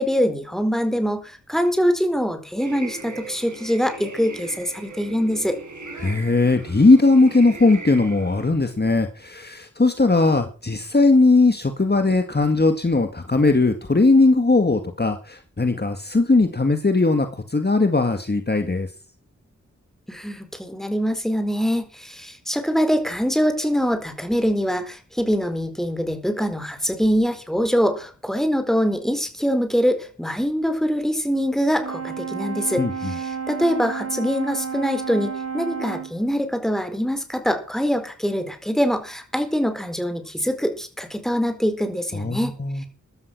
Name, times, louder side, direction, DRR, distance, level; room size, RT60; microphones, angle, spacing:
voice 1, 0.0-5.6 20.1-42.5, equal, ahead, 8 dB, 4.3 m, -24 dB
sound 1, 2.6-8.5, right 3 dB, 80° right, 5.3 m, -38 dB
voice 2, 6.0-18.9 32.8-33.1 42.1-42.8, left 3 dB, 35° left, 7 dB, 1.9 m, -19 dB
Brass instrument, 31.8-36.2, right 6 dB, 55° right, 1.9 m, -31 dB
15.0 x 12.5 x 6.1 m, 0.36 s
wide cardioid pair, 65°, 29 cm